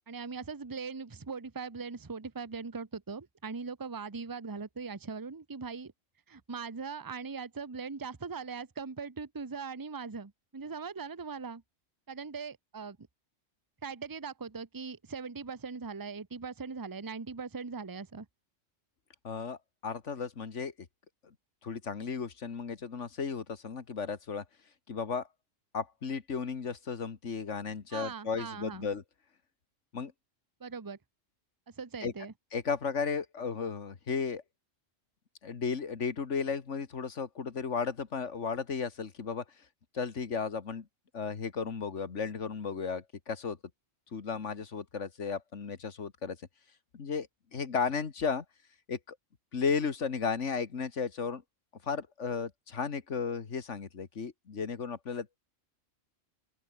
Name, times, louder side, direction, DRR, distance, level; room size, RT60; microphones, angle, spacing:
voice 1, 0.1-5.9 6.3-11.6 12.1-13.0 13.8-18.3 27.9-28.9 30.6-31.0 31.7-32.3, right 5 dB, 20° right, 0.9 m, -40 dB
voice 2, 19.2-20.7 21.6-24.4 24.9-25.3 25.7-29.0 29.9-30.1 32.0-32.1 32.5-34.4 35.4-39.4 39.9-40.9 41.1-43.6 44.1-46.4 46.9-48.4 48.9-49.2 49.5-51.4 51.8-55.3, left 5 dB, 65° left, 2.0 m, -34 dB
open air
omnidirectional pair, 1.3 m